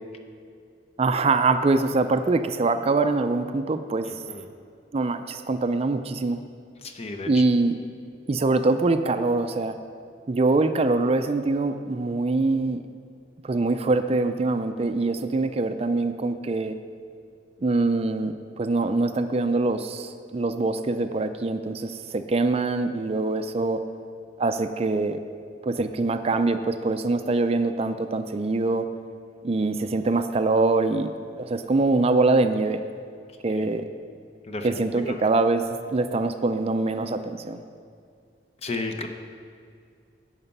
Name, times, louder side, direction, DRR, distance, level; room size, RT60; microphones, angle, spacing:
voice 1, 1.0-4.1 4.9-6.4 7.2-7.8 8.3-9.8 10.3-12.8 13.4-16.7 17.6-23.8 24.4-25.2 25.6-28.8 29.4-32.8 33.4-33.8 34.6-35.6 35.9-37.6, right 3 dB, 35° right, 9 dB, 0.4 m, -24 dB
voice 2, 4.1-4.5 6.8-7.4 33.5-33.7 34.5-35.2 38.6-39.1, left 3 dB, 35° left, 5 dB, 0.8 m, -34 dB
11.0 x 8.0 x 5.4 m, 2.2 s
head